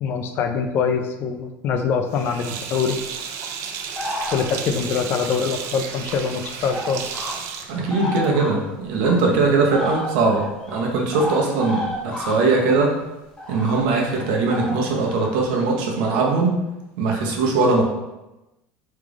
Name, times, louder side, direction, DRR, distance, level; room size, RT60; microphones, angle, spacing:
voice 1, 0.0-3.0 4.3-7.2, left 6 dB, 40° left, 7 dB, 0.4 m, -24 dB
Sink (filling or washing), 2.1-8.5, right 6 dB, 55° right, 0.4 m, -33 dB
sound 1, 4.0-4.8 6.1-6.2 6.7-7.5 7.8-9.2 9.7-13.0 13.4-15.6, equal, 15° left, 0.8 m, -31 dB
voice 2, 7.7-13.0 13.5-16.6 17.0-17.8, right 3 dB, 75° right, 0 dB, 0.9 m, -20 dB
3.4 x 3.2 x 3.7 m, 1.0 s
cardioid pair, 150°, 6 cm